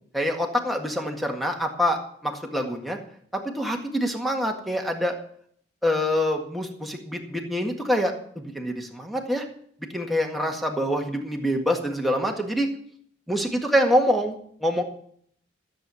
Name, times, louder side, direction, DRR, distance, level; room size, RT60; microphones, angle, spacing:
voice 1, 0.1-3.0 3.3-5.1 5.8-9.5 9.9-12.7 13.3-14.8, equal, ahead, 3 dB, 1.8 m, -25 dB
14.0 x 7.9 x 7.1 m, 0.62 s
head